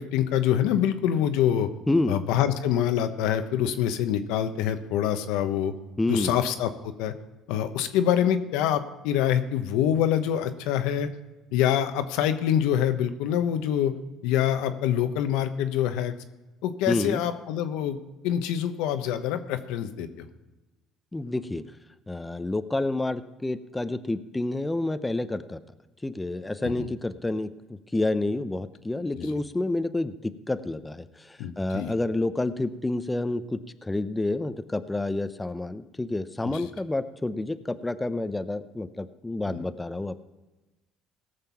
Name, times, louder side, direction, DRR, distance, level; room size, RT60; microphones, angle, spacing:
voice 1, 0.0-1.7 2.1-5.7 6.1-7.1 7.5-11.1 11.5-13.9 14.2-16.1 16.6-18.0 18.2-20.3 26.6-26.9 29.2-29.3 31.4-31.9 36.4-36.7 39.5-39.6, left 10 dB, 85° left, 9 dB, 1.0 m, -25 dB
voice 2, 1.9-2.2 6.0-6.4 16.9-17.2 21.1-21.7 22.1-25.6 26.0-40.2, left 2 dB, 10° left, 11 dB, 0.6 m, -29 dB
17.5 x 6.7 x 5.8 m, 1.1 s
cardioid pair, 100°, 0 cm